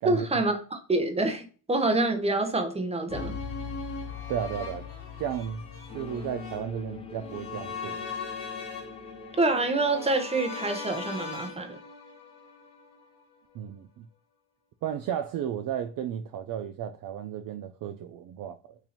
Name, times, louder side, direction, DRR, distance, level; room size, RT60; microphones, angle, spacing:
voice 1, 0.0-3.3 9.4-11.8, right 2 dB, 15° right, 0.8 m, -26 dB
sound 1, 3.1-13.2 13.5-13.6, left 5 dB, 55° left, 1.6 m, -39 dB
voice 2, 4.3-4.9 5.2-5.7 5.9-8.0 13.5-14.0 14.8-18.8, right 9 dB, 45° right, 0.4 m, -33 dB
sound 2, 5.9-11.0, left 4 dB, 15° left, 0.4 m, -45 dB
2.9 x 2.7 x 4.0 m
supercardioid pair, 55°, 49 cm